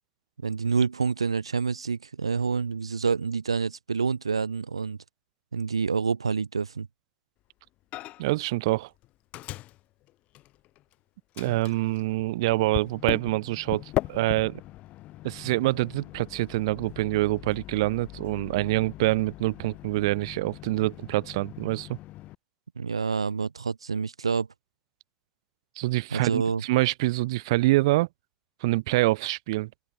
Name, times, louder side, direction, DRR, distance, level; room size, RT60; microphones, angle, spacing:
voice 1, 0.4-5.0 5.5-6.9 22.8-24.5 26.1-26.6, right 5 dB, 85° right, 2.9 m, -27 dB
Microwave oven, 7.9-8.4 8.7-10.9 11.3-22.4, left 17 dB, 55° left, 7.1 m, -39 dB
voice 2, 8.2-8.9 11.4-14.6 15.2-22.0 25.8-28.1 28.6-29.7, right 19 dB, 70° right, 2.6 m, -26 dB
figure-of-eight pair, 60°, 3 cm